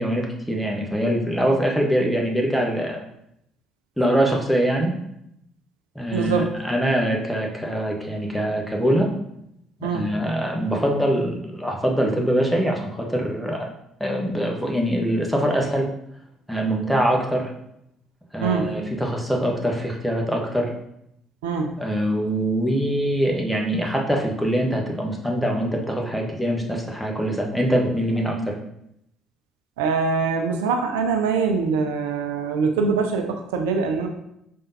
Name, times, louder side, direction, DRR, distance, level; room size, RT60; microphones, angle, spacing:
voice 1, 0.0-3.0 4.0-4.9 5.9-9.1 9.8-13.7 14.0-15.9 16.5-17.5 18.3-20.7 21.8-28.6, equal, ahead, 0 dB, 1.1 m, -23 dB
voice 2, 6.1-6.5 9.8-10.1 18.4-18.7 21.4-21.8 29.8-34.1, right 5 dB, 75° right, 4 dB, 0.4 m, -23 dB
5.2 x 3.6 x 2.7 m, 0.78 s
figure-of-eight pair, 50°, 0 cm